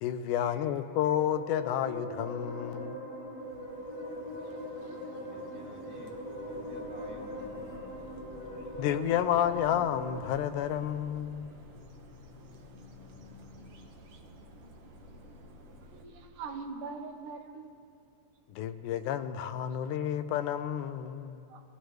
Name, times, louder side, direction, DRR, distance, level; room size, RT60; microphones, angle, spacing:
voice 1, 0.0-3.0 8.8-11.5 18.5-21.4, left 10 dB, 85° left, 10 dB, 2.1 m, -30 dB
sound 1, 0.9-10.2, left 1 dB, 50° right, 4.0 m, -41 dB
sound 2, 3.4-16.0, right 3 dB, 70° right, 1.2 m, -55 dB
voice 2, 5.2-7.9, equal, 5° right, -3 dB, 1.7 m, -51 dB
sound 3, 6.1-16.6, left 3 dB, 55° left, 1.9 m, -53 dB
voice 3, 15.8-17.7 21.5-21.6, right 4 dB, 85° right, 5 dB, 2.5 m, -42 dB
22.0 x 16.5 x 3.2 m, 2.4 s
omnidirectional pair, 3.6 m